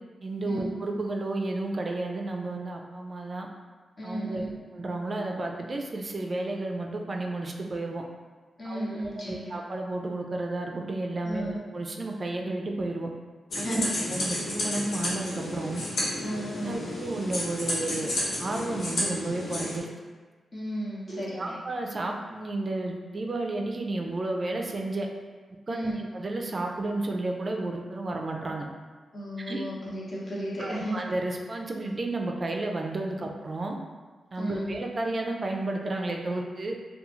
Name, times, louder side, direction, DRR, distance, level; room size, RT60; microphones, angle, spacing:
voice 1, 0.2-3.5 4.0-4.4 4.7-8.0 8.6-13.1 13.5-13.8 14.1-15.8 16.7-18.1 18.4-19.9 21.1-25.1 25.7-28.7 29.5-29.6 30.6-33.8 34.3-36.8, right 2 dB, 50° right, 1 dB, 0.3 m, -32 dB
voice 2, 4.0-4.5 8.6-9.5 11.2-11.6 13.6-13.9 16.2-16.8 20.5-21.6 25.7-26.0 29.1-31.0 33.1-33.3 34.3-34.7, equal, 55° left, -6 dB, 0.9 m, -34 dB
sound 1, 13.5-19.8, left 1 dB, 75° left, 0.7 m, -31 dB
2.3 x 2.3 x 3.0 m, 1.4 s
supercardioid pair, 40°, 0 cm